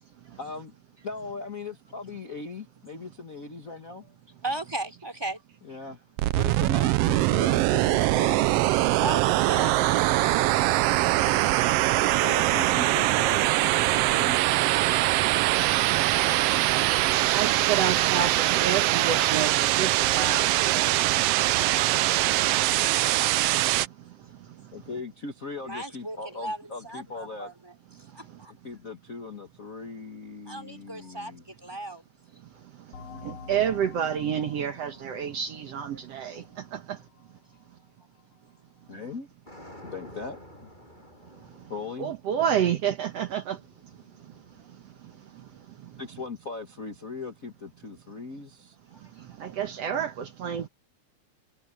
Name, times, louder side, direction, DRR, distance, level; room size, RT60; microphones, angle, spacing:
voice 1, 0.4-0.7 1.0-4.0 5.6-6.0 6.3-8.5 12.2-14.5 24.7-27.5 28.6-31.4 38.9-39.3 39.8-40.7 41.7-42.1 46.0-48.8, left 4 dB, 35° left, 1.5 m, -39 dB
voice 2, 4.4-5.4 5.7-5.8 8.9-10.6 25.6-28.5 30.4-32.0 33.0-33.1 35.9-36.6 39.7-39.8 41.1-41.2 49.0-49.3, right 1 dB, 10° right, 3.2 m, -38 dB
sound 1, 6.2-23.9, right 16 dB, 85° right, 1.4 m, -23 dB
voice 3, 17.3-20.9 33.2-36.4 36.7-37.0 42.0-43.6 49.4-50.7, right 8 dB, 65° right, 2.1 m, -29 dB
sound 2, 32.9-38.2, left 6 dB, 60° left, 4.0 m, -48 dB
sound 3, 39.5-45.6, left 1 dB, 15° left, 7.3 m, -51 dB
omnidirectional pair, 3.4 m